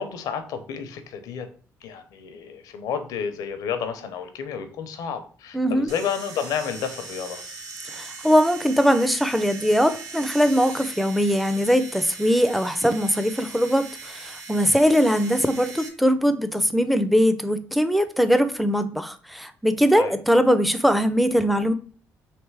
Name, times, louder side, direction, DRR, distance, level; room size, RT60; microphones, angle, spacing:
voice 1, 0.0-1.5 1.8-7.4 20.0-20.2, left 7 dB, 80° left, 9 dB, 0.6 m, -31 dB
voice 2, 5.5-5.9 7.9-21.7, equal, ahead, 10 dB, 0.5 m, -21 dB
sound 1, 5.9-15.9, right 4 dB, 75° right, 0.9 m, -40 dB
3.3 x 3.0 x 4.6 m, 0.42 s
cardioid pair, 80°, 6 cm